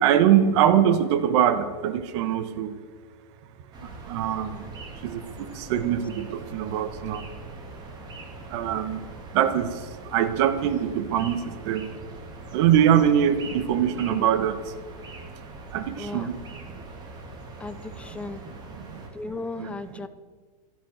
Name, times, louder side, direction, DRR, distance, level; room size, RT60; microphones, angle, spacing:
voice 1, 0.0-2.7 4.1-4.6 5.0-5.2 5.7-7.2 8.5-9.0 9.3-9.7 10.1-11.4 11.7-11.8 12.5-14.5 15.7-16.4 19.6-19.7, right 10 dB, 45° right, 10 dB, 1.3 m, -22 dB
sound 1, 3.7-19.1, right 2 dB, 20° right, 2.7 m, -42 dB
voice 2, 16.0-16.3 17.6-18.4 19.1-20.1, left 3 dB, 5° left, 12 dB, 0.4 m, -35 dB
13.5 x 11.5 x 7.6 m, 1.4 s
supercardioid pair, 155°, 21 cm